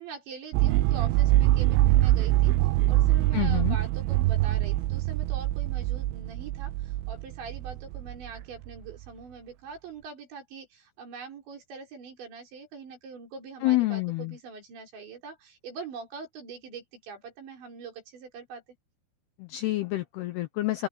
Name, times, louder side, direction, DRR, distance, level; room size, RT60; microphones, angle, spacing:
voice 1, 0.0-2.5 2.9-18.6, right 5 dB, 65° right, 7.5 m, -43 dB
sound 1, 0.5-8.7, right 15 dB, 85° right, 3.1 m, -24 dB
voice 2, 3.3-3.8 13.6-14.3 19.4-20.9, left 18 dB, 80° left, 2.4 m, -28 dB
open air
omnidirectional pair, 5.6 m